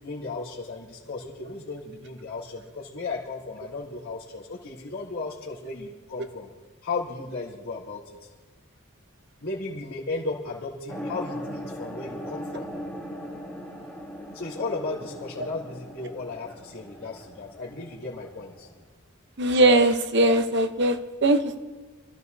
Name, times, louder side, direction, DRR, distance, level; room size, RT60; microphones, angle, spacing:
voice 1, 0.0-6.5 6.8-8.0 9.4-12.7 14.3-18.7, left 3 dB, 70° left, -8 dB, 3.3 m, -35 dB
sound 1, 10.9-18.8, equal, 10° left, 1.9 m, -39 dB
voice 2, 19.4-21.6, right 1 dB, 50° right, 7 dB, 0.9 m, -20 dB
27.5 x 14.0 x 2.7 m, 1.3 s
head